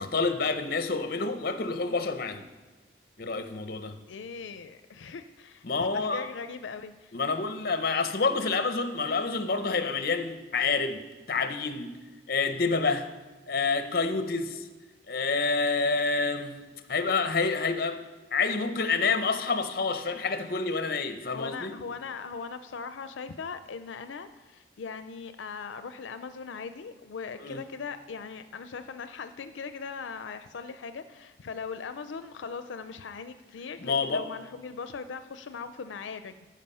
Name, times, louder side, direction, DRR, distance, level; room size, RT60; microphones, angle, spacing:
voice 1, 0.0-2.5 3.2-4.0 5.6-6.3 7.1-11.0 11.3-11.9 12.3-13.1 13.5-14.7 15.1-16.6 16.9-18.0 18.3-21.8 27.4-27.6 33.8-34.2, left 4 dB, 50° left, 9 dB, 0.7 m, -28 dB
voice 2, 4.1-5.7 5.9-7.2 21.3-36.5, left 5 dB, 85° left, 10 dB, 0.5 m, -39 dB
14.5 x 5.1 x 5.5 m, 1.3 s
head